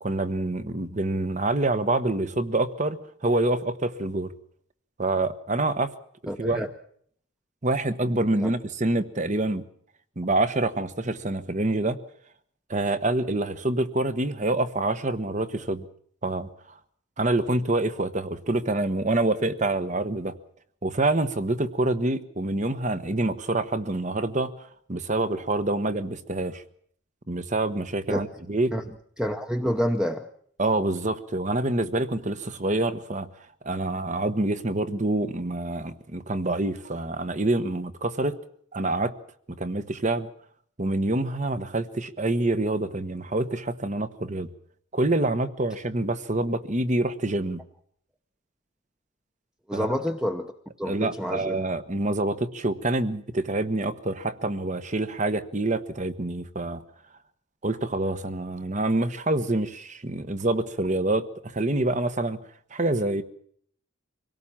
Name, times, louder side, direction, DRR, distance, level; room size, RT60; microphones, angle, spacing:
voice 1, 0.0-4.3 5.0-5.9 6.4-6.6 7.6-9.6 10.2-12.0 12.7-15.8 16.2-16.5 17.2-20.3 20.8-24.5 24.9-26.6 27.3-28.7 30.6-33.3 33.6-38.4 38.7-39.1 39.6-40.3 40.8-44.5 44.9-47.6 49.7-49.9 50.8-56.8 57.6-62.4 62.7-63.2, right 2 dB, 35° right, 12 dB, 1.1 m, -26 dB
voice 2, 6.3-6.7 8.4-8.5 28.1-28.3 28.7-28.8 29.2-30.3 49.7-50.5 50.8-51.6, equal, 5° right, 5 dB, 0.9 m, -28 dB
25.0 x 17.5 x 7.3 m, 0.64 s
head